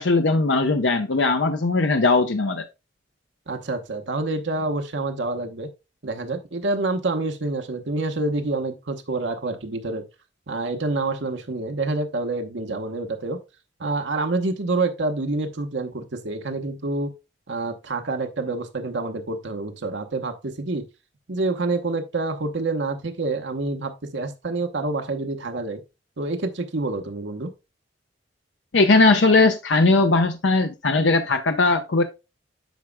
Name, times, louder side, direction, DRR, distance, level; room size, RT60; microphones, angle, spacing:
voice 1, 0.0-2.6 28.7-32.0, left 3 dB, 90° left, 0.7 m, -19 dB
voice 2, 3.5-5.7 6.0-10.0 10.5-13.4 13.8-17.1 17.5-20.9 21.3-25.8 26.2-27.5, right 2 dB, 80° right, 1.0 m, -27 dB
9.1 x 6.0 x 2.2 m
head